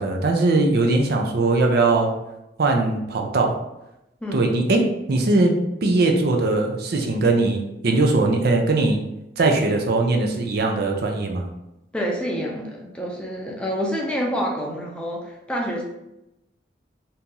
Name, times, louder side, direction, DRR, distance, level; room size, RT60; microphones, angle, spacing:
voice 1, 0.0-2.1 2.6-3.6 4.3-9.0 9.4-11.5, right 2 dB, 60° right, 2 dB, 0.5 m, -20 dB
voice 2, 4.2-4.6 11.9-15.8, equal, 5° left, -2 dB, 0.5 m, -27 dB
2.9 x 2.7 x 3.7 m, 0.89 s
head